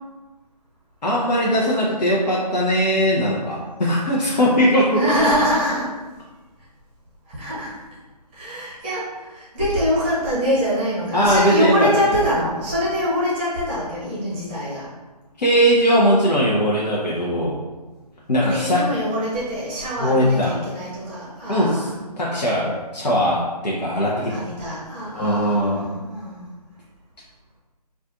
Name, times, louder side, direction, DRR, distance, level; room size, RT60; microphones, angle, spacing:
voice 1, 1.0-5.0 11.1-12.1 15.4-17.6 18.3-18.9 20.0-20.5 21.5-21.9 22.2-24.3 25.1-25.9, equal, 80° left, -5 dB, 0.7 m, -19 dB
voice 2, 4.9-5.9 7.3-7.7 8.3-14.9 18.5-21.9 24.3-26.5, equal, 15° right, -7 dB, 0.8 m, -24 dB
3.9 x 2.4 x 2.5 m, 1.2 s
figure-of-eight pair, 155°, 21 cm